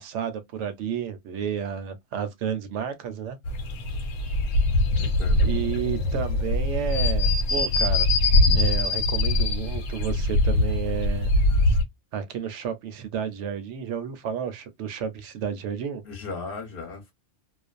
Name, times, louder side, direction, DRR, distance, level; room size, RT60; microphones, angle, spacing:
voice 1, 0.0-3.4 5.4-8.1 8.5-11.3 12.1-16.0, right 8 dB, 70° right, 0.8 m, -31 dB
sound 1, 3.4-11.8, left 2 dB, 80° left, 0.9 m, -22 dB
voice 2, 5.0-5.5 16.0-17.1, left 4 dB, 50° left, 1.0 m, -36 dB
2.4 x 2.1 x 2.4 m
omnidirectional pair, 1.3 m